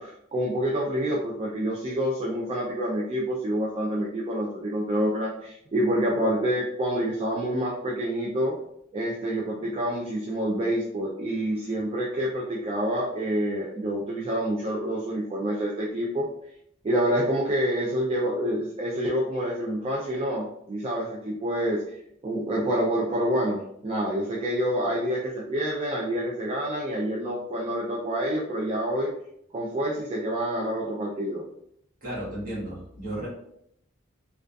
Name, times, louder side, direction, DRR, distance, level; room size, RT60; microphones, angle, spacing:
voice 1, 0.0-8.6 8.9-16.3 16.8-29.1 29.5-31.4, equal, 30° right, -3 dB, 0.3 m, -27 dB
voice 2, 32.0-33.3, right 1 dB, 45° right, -6 dB, 1.2 m, -34 dB
2.5 x 2.3 x 2.2 m, 0.72 s
head